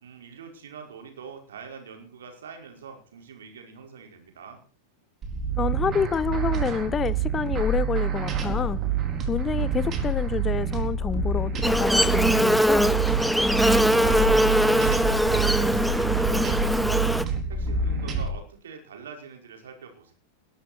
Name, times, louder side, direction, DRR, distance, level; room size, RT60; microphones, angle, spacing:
voice 1, 0.0-4.6 13.3-20.1, right 6 dB, 65° right, 5.2 m, -43 dB
sound 1, 5.2-18.3, right 5 dB, 30° right, 4.4 m, -27 dB
voice 2, 5.6-8.8 9.3-13.0, left 6 dB, 20° left, 0.8 m, -28 dB
Buzz, 11.6-17.2, equal, ahead, 1.0 m, -22 dB
20.5 x 12.5 x 4.4 m
figure-of-eight pair, 90°, 0 cm